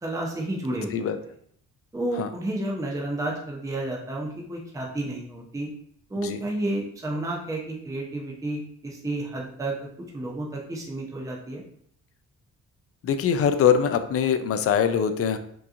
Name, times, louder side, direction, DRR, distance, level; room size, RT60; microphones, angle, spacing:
voice 1, 0.0-0.9 1.9-5.7 6.1-9.7 10.1-11.6, right 1 dB, 10° right, -2 dB, 0.6 m, -31 dB
voice 2, 13.0-15.4, left 7 dB, 50° left, 10 dB, 0.4 m, -23 dB
3.5 x 2.9 x 2.5 m, 0.66 s
cardioid pair, 90°, 30 cm